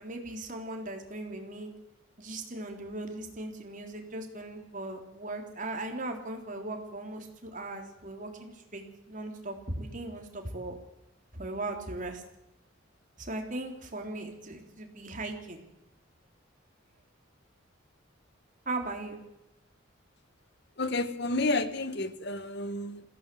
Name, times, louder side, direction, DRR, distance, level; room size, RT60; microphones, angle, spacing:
voice 1, 0.0-1.7 2.2-10.7 11.3-12.2 13.2-15.6 18.7-19.2, right 2 dB, 40° right, 3 dB, 3.7 m, -38 dB
voice 2, 20.8-23.0, left 2 dB, 55° left, 12 dB, 1.5 m, -30 dB
22.0 x 16.0 x 7.8 m, 0.92 s
head